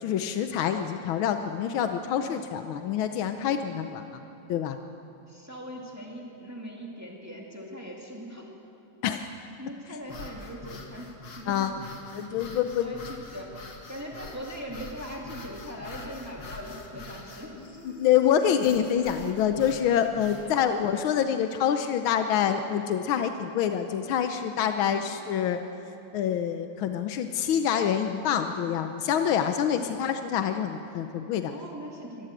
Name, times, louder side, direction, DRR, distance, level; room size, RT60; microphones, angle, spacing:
voice 1, 0.0-4.2 4.5-4.8 9.0-9.3 11.5-11.7 12.1-12.9 18.0-25.6 26.1-31.5, left 9 dB, 90° left, 7 dB, 1.6 m, -26 dB
voice 2, 5.3-8.5 9.6-11.7 12.8-13.6 13.9-17.5 20.4-20.7 24.9-25.0 29.4-30.0 31.5-32.3, equal, 10° right, -1 dB, 2.3 m, -40 dB
sound 1, 10.0-20.5, left 3 dB, 65° left, 2.6 m, -44 dB
23.5 x 14.5 x 9.0 m, 2.8 s
omnidirectional pair, 2.2 m